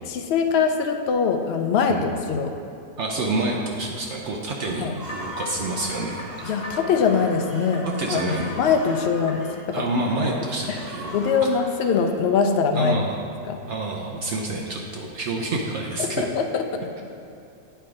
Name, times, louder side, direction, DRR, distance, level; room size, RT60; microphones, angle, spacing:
voice 1, 0.1-2.5 4.8-5.0 6.4-9.9 10.7-10.8 11.1-13.0 13.5-13.6 16.0-16.6, left 5 dB, 85° left, 5 dB, 0.5 m, -23 dB
voice 2, 3.0-6.2 8.0-8.5 9.7-11.2 12.7-13.2 13.7-16.2, right 2 dB, 60° right, -1 dB, 0.8 m, -28 dB
sound 1, 4.2-9.6, equal, 35° left, 0.5 m, -41 dB
sound 2, 4.8-12.9, equal, 30° right, 1.4 m, -40 dB
9.2 x 4.4 x 4.9 m, 2.7 s
omnidirectional pair, 1.6 m